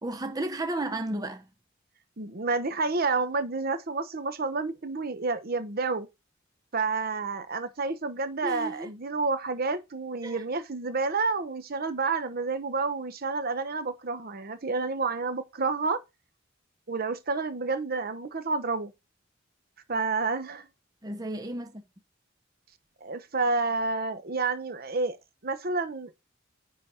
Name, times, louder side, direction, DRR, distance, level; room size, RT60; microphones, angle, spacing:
voice 1, 0.0-1.5 8.4-8.9 10.2-10.4 21.0-21.8, right 1 dB, 20° right, 0.7 m, -33 dB
voice 2, 2.2-6.1 6.7-16.0 16.9-18.9 19.9-20.7 23.0-25.2 25.4-26.1, right 3 dB, 50° right, 0.9 m, -29 dB
9.8 x 4.0 x 4.3 m
head